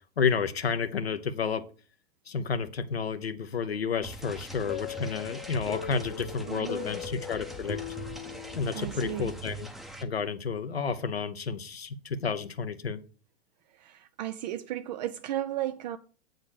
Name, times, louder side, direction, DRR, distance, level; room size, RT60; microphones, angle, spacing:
voice 1, 0.2-1.6 2.3-7.8 8.6-9.7 10.0-13.0, left 5 dB, 75° left, 1.0 m, -31 dB
sound 1, 4.0-10.0, right 1 dB, ahead, 0.8 m, -42 dB
sound 2, 4.7-9.4, left 12 dB, 30° left, 0.5 m, -40 dB
voice 2, 6.5-7.0 8.7-9.4 13.7-16.0, right 13 dB, 45° right, 0.5 m, -35 dB
8.3 x 4.0 x 6.5 m
figure-of-eight pair, 95°, 31 cm